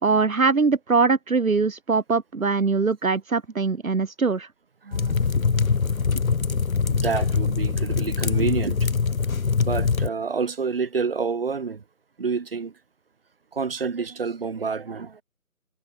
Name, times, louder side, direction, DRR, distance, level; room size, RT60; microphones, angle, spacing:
voice 1, 0.0-4.5, right 4 dB, 65° right, 1.8 m, -22 dB
voice 2, 4.8-5.5 6.1-6.2 6.9-8.9 9.6-11.8 12.2-12.7 13.5-15.2, right 5 dB, 40° right, 3.2 m, -28 dB
sound 1, 4.9-10.1, left 5 dB, 65° left, 1.1 m, -23 dB
figure-of-eight pair, 165°, 45 cm